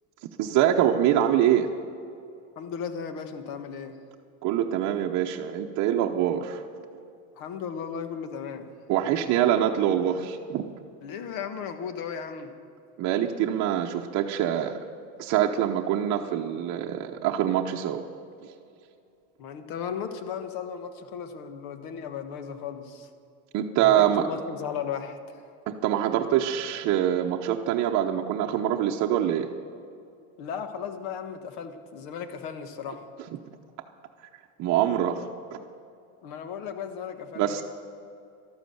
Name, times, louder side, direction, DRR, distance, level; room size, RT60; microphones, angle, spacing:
voice 1, 0.4-1.7 4.4-6.6 8.9-10.6 13.0-14.8 15.2-18.0 23.5-24.3 25.7-29.5 34.6-35.6 37.4-37.6, right 10 dB, 50° right, 2 dB, 0.8 m, -24 dB
voice 2, 2.6-3.9 7.4-8.7 11.0-12.5 19.4-23.1 23.8-25.4 30.4-33.1 36.2-37.6, left 7 dB, 65° left, 8 dB, 1.5 m, -36 dB
12.5 x 12.0 x 7.9 m, 2.6 s
cardioid pair, 140°, 36 cm